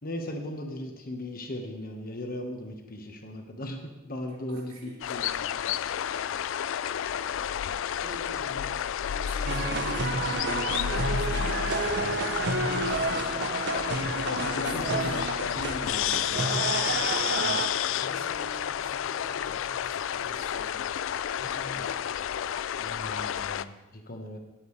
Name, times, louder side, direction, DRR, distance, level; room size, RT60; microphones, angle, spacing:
voice 1, 0.0-5.5 14.4-15.1 15.5-16.6 22.8-24.4, left 1 dB, 45° left, 3 dB, 1.4 m, -38 dB
voice 2, 4.3-5.3 7.2-13.5 14.7-15.2 15.8-16.3 17.4-20.8 21.3-22.1, equal, 75° right, -2 dB, 3.0 m, -48 dB
sound 1, 5.0-23.6, left 9 dB, 60° left, 0.3 m, -30 dB
sound 2, 9.5-17.7, right 3 dB, 55° right, 0.7 m, -30 dB
17.5 x 8.0 x 3.3 m, 1.0 s
head